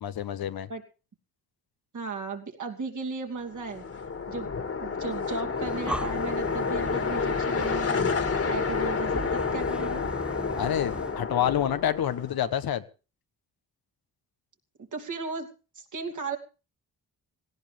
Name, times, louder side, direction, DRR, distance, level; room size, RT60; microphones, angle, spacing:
voice 1, 0.0-0.7 10.5-12.8, left 10 dB, 70° left, 1.3 m, -28 dB
voice 2, 1.9-3.8 4.3-4.5 4.8-10.1 14.9-16.4, right 4 dB, 50° right, 2.9 m, -36 dB
sound 1, 3.5-12.5, left 5 dB, 40° left, 2.3 m, -30 dB
Breathing, 5.5-11.2, right 1 dB, 5° right, 0.7 m, -38 dB
18.0 x 17.0 x 3.4 m
cardioid pair, 95°, 37 cm